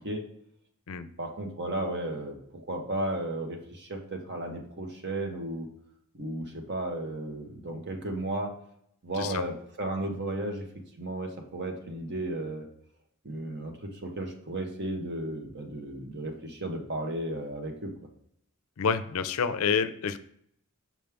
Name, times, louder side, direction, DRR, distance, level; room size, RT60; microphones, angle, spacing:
voice 1, 1.2-5.7 6.1-8.5 9.0-10.7 11.0-12.7 13.2-17.9, right 1 dB, 50° right, 3 dB, 1.1 m, -34 dB
voice 2, 18.8-20.2, left 6 dB, 70° left, 12 dB, 0.5 m, -28 dB
6.2 x 5.2 x 3.5 m, 0.69 s
head